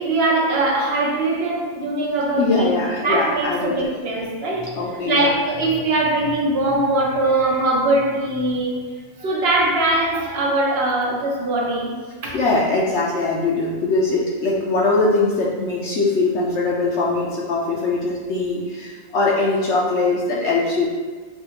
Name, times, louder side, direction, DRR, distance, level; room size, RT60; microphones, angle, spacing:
voice 1, 0.0-2.7 3.0-8.7 9.2-12.4, right 2 dB, 55° right, -1 dB, 0.8 m, -21 dB
voice 2, 2.4-3.9 4.8-5.3 12.3-20.9, left 3 dB, 65° left, -4 dB, 0.8 m, -21 dB
5.6 x 2.4 x 2.8 m, 1.4 s
omnidirectional pair, 1.4 m